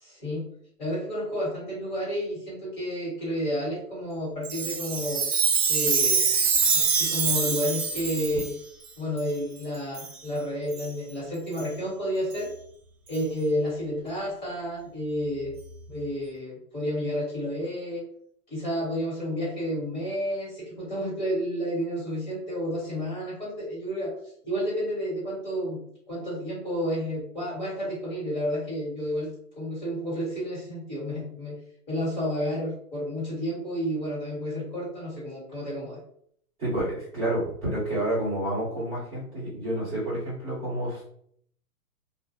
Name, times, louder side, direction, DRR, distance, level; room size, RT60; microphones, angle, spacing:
voice 1, 0.0-0.5 0.8-5.2 5.7-6.2 6.7-8.5 9.0-12.5 13.1-15.5 15.9-18.0 18.5-24.1 24.4-31.6 31.9-36.0, equal, 30° left, -7 dB, 1.4 m, -31 dB
Chime, 4.4-8.5 9.2-9.3 9.9-10.1 10.7-10.9 11.6-11.7 12.3-12.4 13.1-13.2, right 5 dB, 65° right, 0.7 m, -25 dB
voice 2, 36.6-41.0, right 1 dB, 5° right, -18 dB, 0.8 m, -29 dB
2.4 x 2.0 x 2.7 m, 0.65 s
hypercardioid pair, 165°, 46 cm